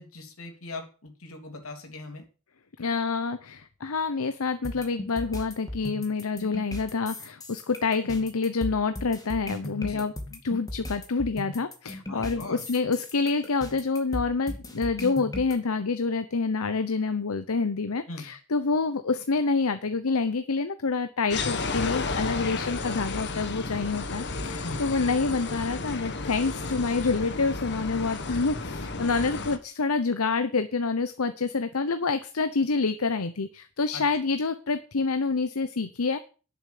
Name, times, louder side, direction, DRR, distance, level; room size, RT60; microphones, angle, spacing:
voice 1, 0.0-2.2 9.8-10.0 12.1-12.6 18.1-18.3 24.6-24.8 33.9-34.0, left 2 dB, 70° left, 4 dB, 3.3 m, -40 dB
voice 2, 2.8-36.2, left 4 dB, 90° left, 11 dB, 0.9 m, -27 dB
sound 1, 4.6-15.5, left 1 dB, 15° left, 2.3 m, -37 dB
sound 2, 21.3-29.6, left 3 dB, 55° left, 1.5 m, -32 dB
11.0 x 7.1 x 7.8 m, 0.36 s
head